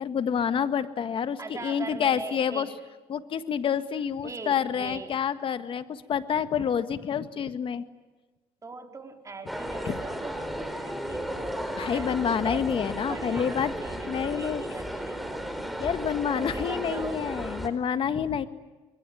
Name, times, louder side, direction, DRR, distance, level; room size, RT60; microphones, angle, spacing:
voice 1, 0.0-2.7 3.1-7.8 9.8-10.0 11.8-13.7 14.1-14.6 15.8-18.5, left 8 dB, 50° left, 10 dB, 1.7 m, -28 dB
voice 2, 1.4-2.7 4.2-5.2 8.6-15.5 16.3-17.2, right 4 dB, 30° right, 4 dB, 3.9 m, -41 dB
sound 1, 9.5-17.7, equal, ahead, 4.2 m, -34 dB
26.0 x 22.5 x 9.5 m, 1.2 s
supercardioid pair, 80°, 11 cm